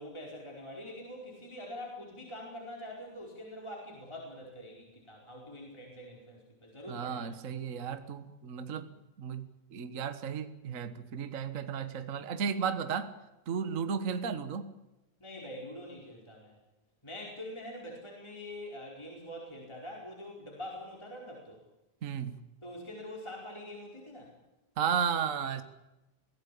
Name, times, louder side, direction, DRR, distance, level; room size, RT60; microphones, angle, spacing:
voice 1, 0.0-7.3 13.5-13.6 15.2-16.6 17.0-21.6 22.6-24.3, left 1 dB, 10° left, -2 dB, 4.5 m, -44 dB
voice 2, 6.9-8.9 9.2-13.1 13.5-14.7 22.0-22.4 24.8-25.6, right 7 dB, 50° right, 10 dB, 0.9 m, -34 dB
24.0 x 17.0 x 8.5 m, 0.99 s
omnidirectional pair, 3.5 m